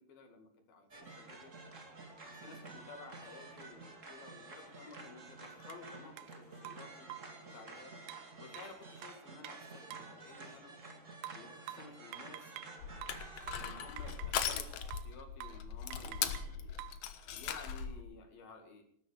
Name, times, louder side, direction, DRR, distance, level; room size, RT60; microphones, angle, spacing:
voice 1, 0.0-1.5 2.3-7.1 7.5-7.9 8.4-10.7 11.3-12.5 13.6-16.8 17.3-18.8, left 3 dB, 60° left, 5 dB, 3.8 m, -54 dB
sound 1, 0.9-14.9, right 3 dB, 30° right, 1.5 m, -51 dB
sound 2, 5.7-5.8 6.2-6.3 6.7-7.4 8.1-10.2 11.2-12.8 13.0-14.6 14.9-15.2 15.4-15.7 15.9-17.0, right 14 dB, 90° right, 3.1 m, -50 dB
Crushing, 12.8-18.0, left 8 dB, 75° left, 1.7 m, -39 dB
19.5 x 10.5 x 6.5 m, 0.67 s
omnidirectional pair, 5.1 m